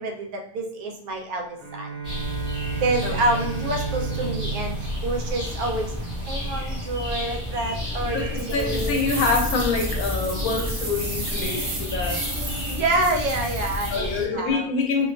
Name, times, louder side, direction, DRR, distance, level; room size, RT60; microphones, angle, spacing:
voice 1, 0.0-1.4 1.7-1.9 2.8-4.7 5.0-5.9 6.3-9.1 12.7-14.7, right 2 dB, 85° right, 3 dB, 1.1 m, -27 dB
Bowed string instrument, 1.6-6.2, right 6 dB, 55° left, 1.0 m, -33 dB
sound 1, 2.0-14.3, left 1 dB, 5° right, 0.8 m, -31 dB
voice 2, 8.1-12.2 13.9-15.1, left 4 dB, 80° left, 2 dB, 1.0 m, -26 dB
sound 2, 8.4-14.0, right 2 dB, 50° right, 0.8 m, -34 dB
2.6 x 2.3 x 2.2 m, 0.66 s
omnidirectional pair, 1.5 m